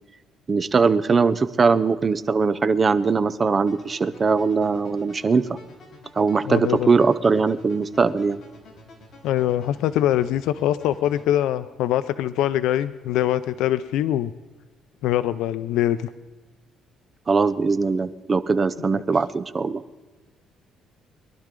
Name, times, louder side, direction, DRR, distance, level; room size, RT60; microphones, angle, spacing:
voice 1, 0.5-5.4 6.2-8.4 17.3-19.8, right 4 dB, 25° right, 13 dB, 0.6 m, -21 dB
sound 1, 3.7-11.3, left 2 dB, 40° left, 4.4 m, -48 dB
voice 2, 6.5-6.9 9.2-14.3 15.0-16.1, left 12 dB, 90° left, 13 dB, 0.5 m, -23 dB
22.5 x 12.0 x 3.8 m, 1.3 s
cardioid pair, 145°, 0 cm